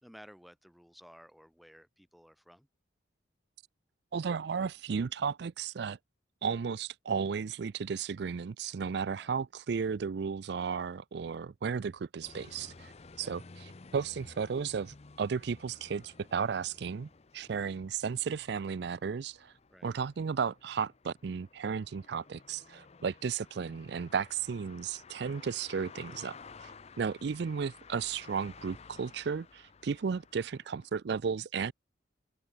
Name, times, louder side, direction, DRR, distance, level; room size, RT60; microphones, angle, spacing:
voice 1, 0.0-2.7 9.1-9.3 13.2-13.3 17.4-17.7 19.7-19.9 25.3-25.5, equal, ahead, 3.3 m, -56 dB
voice 2, 4.1-6.0 6.4-12.9 13.2-19.5 19.8-26.7 27.0-31.7, right 6 dB, 60° right, 0.4 m, -34 dB
sound 1, 12.2-30.9, left 4 dB, 35° left, 0.6 m, -54 dB
open air
head